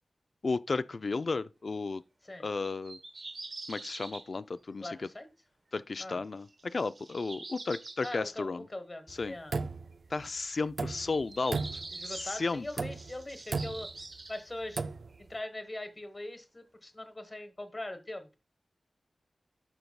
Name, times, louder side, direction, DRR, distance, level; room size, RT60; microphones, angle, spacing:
voice 1, 0.4-2.0 2.4-3.0 3.7-4.9 5.7-8.6 9.1-9.3 10.1-11.8 12.1-12.7, left 3 dB, 60° left, 0.4 m, -33 dB
sound 1, 2.6-4.3 4.9-5.0 6.4-8.2 10.3-10.7 10.9-14.4, right 2 dB, 60° right, 1.0 m, -45 dB
voice 2, 4.8-5.3 6.0-6.2 8.0-9.6 11.9-13.9 14.3-14.8 15.2-18.3, left 1 dB, 30° left, 1.2 m, -41 dB
sound 2, 9.1-10.3 10.6-11.2 11.5-12.2 12.7-13.2 13.5-14.0 14.6-15.2, right 4 dB, 75° right, 0.3 m, -35 dB
11.5 x 4.6 x 2.2 m
wide cardioid pair, 80°, 0 cm